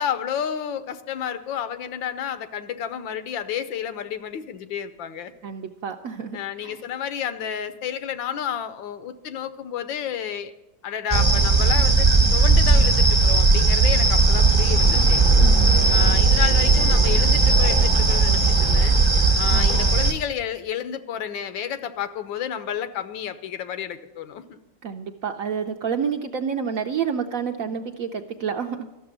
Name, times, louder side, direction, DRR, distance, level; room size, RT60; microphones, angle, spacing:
voice 1, 0.0-5.3 6.3-10.5 10.8-15.2 15.9-19.0 19.3-24.6, left 9 dB, 85° left, 11 dB, 1.5 m, -31 dB
voice 2, 5.4-6.8 15.4-16.2 19.5-20.1 24.8-28.9, right 7 dB, 65° right, 5 dB, 0.8 m, -29 dB
sound 1, 11.1-20.1, right 3 dB, 20° right, 0.8 m, -17 dB
13.5 x 6.8 x 9.9 m, 1.0 s
omnidirectional pair, 2.0 m